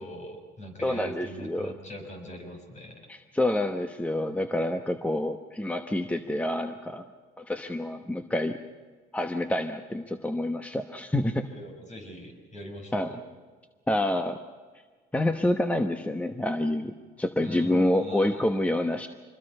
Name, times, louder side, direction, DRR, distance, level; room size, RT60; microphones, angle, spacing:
voice 1, 0.0-3.1 11.4-13.2 17.4-18.4, equal, 45° left, 4 dB, 6.0 m, -42 dB
voice 2, 0.8-1.7 3.1-7.0 7.4-8.6 9.1-11.5 12.9-13.1 13.9-14.4 15.1-19.1, left 1 dB, 10° left, 6 dB, 1.1 m, -27 dB
26.0 x 21.5 x 5.5 m, 1.5 s
cardioid pair, 110°, 17 cm